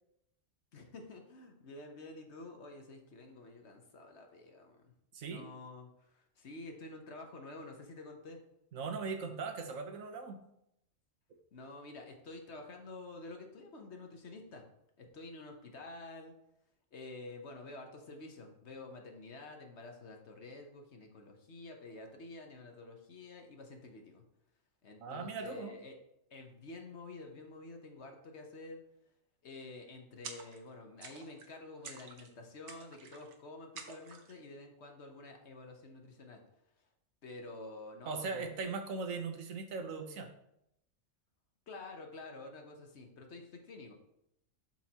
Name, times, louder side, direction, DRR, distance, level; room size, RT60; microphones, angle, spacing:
voice 1, 0.7-4.9 5.3-8.4 11.5-14.7 15.0-16.3 16.9-24.2 24.8-25.9 26.3-28.8 29.4-36.4 37.2-38.5 41.7-44.0, left 2 dB, 55° left, 3 dB, 1.2 m, -49 dB
voice 2, 5.1-5.5 8.7-10.4 25.0-25.7 38.1-40.3, right 4 dB, 80° right, 5 dB, 1.3 m, -39 dB
sound 1, 30.2-30.7 31.0-31.5 31.8-32.3 32.7-33.3 33.8-34.4, right 5 dB, 60° right, 1.1 m, -49 dB
11.5 x 4.5 x 2.9 m, 0.80 s
omnidirectional pair, 1.4 m